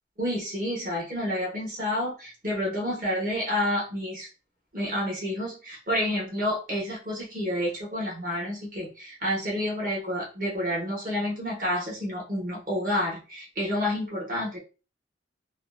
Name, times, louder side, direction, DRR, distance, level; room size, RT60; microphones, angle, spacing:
voice 1, 0.2-4.3 4.7-14.6, left 1 dB, 50° right, -3 dB, 1.0 m, -29 dB
2.6 x 2.0 x 2.3 m, 0.33 s
head